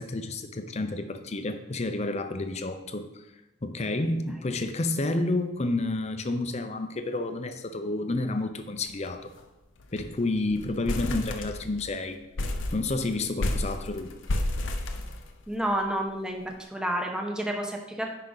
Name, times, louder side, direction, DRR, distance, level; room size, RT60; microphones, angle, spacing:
voice 1, 0.0-3.1 3.6-9.3 9.9-12.2 12.7-14.1, left 2 dB, 35° left, 8 dB, 0.6 m, -30 dB
sound 1, 8.9-9.1 9.4-9.5 9.8-10.2 10.5-11.9 12.4-15.7, left 1 dB, 75° left, 0.7 m, -31 dB
voice 2, 15.5-18.1, right 1 dB, 5° right, 2 dB, 1.0 m, -30 dB
9.9 x 5.0 x 4.0 m, 0.96 s
head